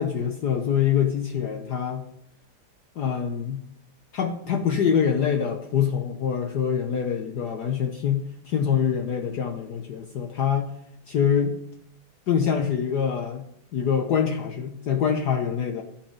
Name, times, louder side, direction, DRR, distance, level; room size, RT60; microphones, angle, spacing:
voice 1, 0.0-2.0 3.0-3.6 4.1-8.2 8.4-10.7 11.1-11.5 12.3-13.4 13.7-15.8, left 7 dB, 60° left, 4 dB, 1.4 m, -25 dB
13.5 x 5.8 x 9.6 m, 0.73 s
omnidirectional pair, 2.2 m